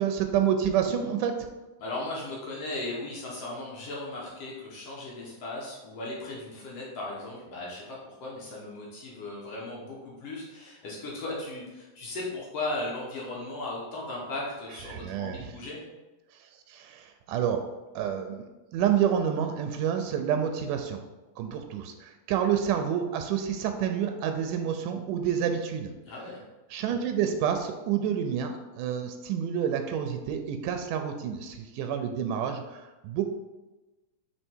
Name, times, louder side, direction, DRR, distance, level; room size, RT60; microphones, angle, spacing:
voice 1, 0.0-1.3 14.9-15.4 16.7-17.6 18.0-21.0 21.4-25.9 26.7-33.2, right 8 dB, 90° right, 6 dB, 2.1 m, -28 dB
voice 2, 1.8-15.8 26.1-26.4, left 2 dB, 65° left, -4 dB, 1.8 m, -37 dB
4.9 x 4.5 x 4.4 m, 1.1 s
omnidirectional pair, 3.6 m